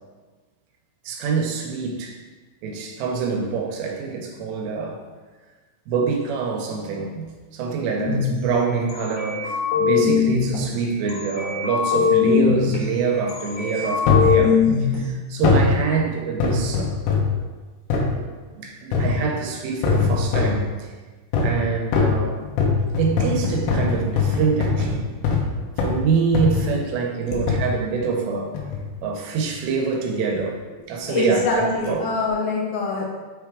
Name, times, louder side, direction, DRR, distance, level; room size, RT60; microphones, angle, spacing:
voice 1, 1.1-2.2 2.6-5.0 5.9-14.6 14.9-17.0 18.5-20.9 21.4-22.5 23.0-25.0 25.8-28.6 29.0-30.6 30.9-32.0, right 5 dB, 80° right, 1 dB, 3.0 m, -25 dB
sound 1, 8.0-8.3 8.9-10.6 11.1-12.8 13.3-15.0, left 7 dB, 55° left, 1.9 m, -21 dB
sound 2, 14.1-14.4 15.4-15.7 16.4-17.4 17.9-18.1 18.9-19.3 19.8-20.6 21.3-21.6 21.9-25.5 25.8-26.0 26.4-26.7 27.5-27.7 28.5-28.9 29.5-29.6, left 4 dB, 90° left, 3.0 m, -21 dB
voice 2, 31.1-33.1, left 3 dB, 70° left, -3 dB, 2.4 m, -24 dB
6.9 x 3.5 x 4.7 m, 1.3 s
omnidirectional pair, 4.9 m